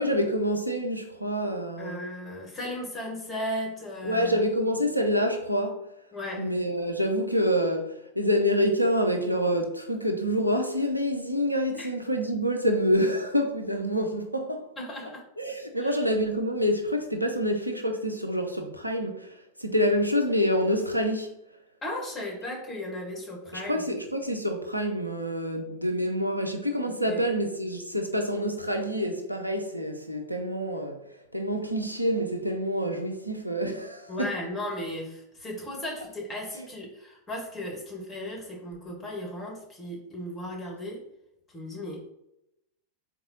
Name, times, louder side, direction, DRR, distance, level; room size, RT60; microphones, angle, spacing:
voice 1, 0.0-2.0 4.0-5.9 6.4-14.7 15.4-21.3 23.5-31.0 31.3-34.4, equal, 90° right, 0.6 m, -27 dB
voice 2, 1.8-4.4 6.1-6.5 11.7-11.9 14.8-15.2 15.8-15.9 21.8-23.8 27.1-27.2 34.1-41.0 41.5-42.1, left 1 dB, 15° left, 1.6 m, -36 dB
3.9 x 2.6 x 4.1 m
figure-of-eight pair, 90°, 0 cm